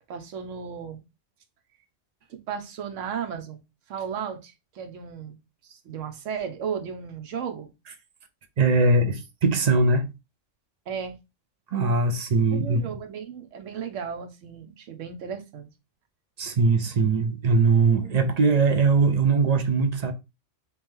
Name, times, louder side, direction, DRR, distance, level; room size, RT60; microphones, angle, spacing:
voice 1, 0.1-1.0 2.3-3.6 3.9-5.4 5.6-7.7 10.9-11.2 12.5-15.7, right 7 dB, 85° right, 1.1 m, -35 dB
voice 2, 8.6-10.1 11.7-12.8 16.4-20.1, right 3 dB, 55° right, 0.4 m, -21 dB
3.3 x 3.0 x 3.5 m
omnidirectional pair, 1.3 m